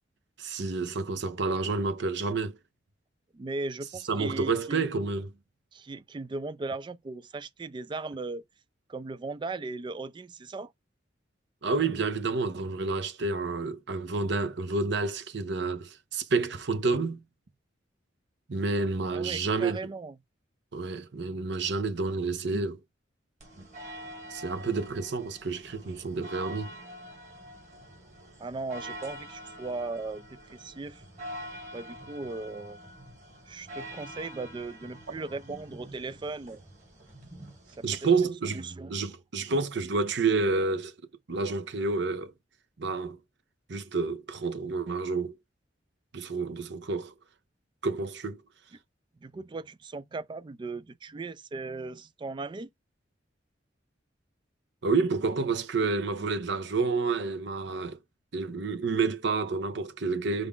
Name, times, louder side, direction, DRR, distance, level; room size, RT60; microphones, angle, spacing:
voice 1, 0.4-2.6 4.1-5.3 11.6-17.2 18.5-19.8 20.7-22.8 24.3-26.7 37.8-38.6 38.9-40.9 41.3-42.3 42.8-43.2 43.7-45.4 46.1-47.1 47.8-48.4 54.8-58.0 58.3-60.5, right 4 dB, 65° right, 0.7 m, -29 dB
voice 2, 3.3-4.9 5.7-8.4 8.9-10.7 19.1-20.2 28.4-31.0 31.7-32.8 33.5-36.6 37.7-37.8 38.5-39.0 49.2-52.7, right 3 dB, 25° right, 0.3 m, -37 dB
sound 1, 23.4-38.2, equal, 40° right, 2.1 m, -45 dB
5.0 x 2.4 x 3.6 m
head